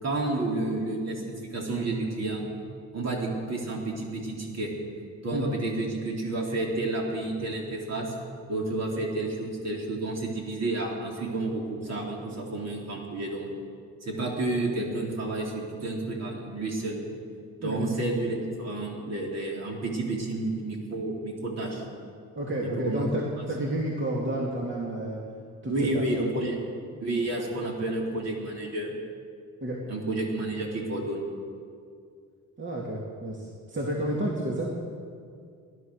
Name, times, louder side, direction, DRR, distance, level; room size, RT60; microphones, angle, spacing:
voice 1, 0.0-1.2 1.5-2.5 2.9-4.7 5.2-8.1 8.5-13.5 14.0-15.5 15.8-17.0 17.6-21.8 22.6-23.1 23.4-23.5 25.7-26.6 27.0-28.9 29.9-31.2, right 2 dB, 55° right, -1 dB, 4.0 m, -30 dB
voice 2, 22.4-25.2 25.6-26.3 29.6-29.8 32.6-34.7, right 1 dB, 40° right, -3 dB, 2.6 m, -30 dB
18.5 x 11.5 x 6.5 m, 2.3 s
cardioid pair, 90°, 31 cm